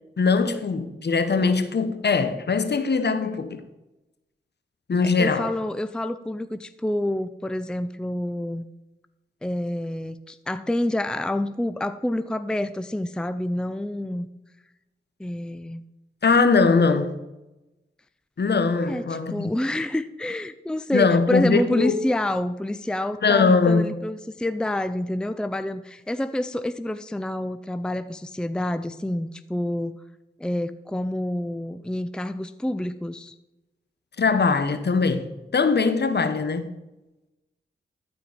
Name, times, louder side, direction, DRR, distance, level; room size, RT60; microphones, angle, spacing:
voice 1, 0.2-3.6 4.9-5.5 16.2-17.2 18.4-19.5 20.9-22.0 23.2-23.9 34.2-36.7, left 4 dB, 55° left, 1.0 m, -21 dB
voice 2, 5.2-8.6 9.4-14.3 15.2-15.8 18.9-30.0 30.4-33.3, left 1 dB, 5° left, 0.5 m, -28 dB
13.5 x 4.6 x 5.0 m
cardioid pair, 45°, 21 cm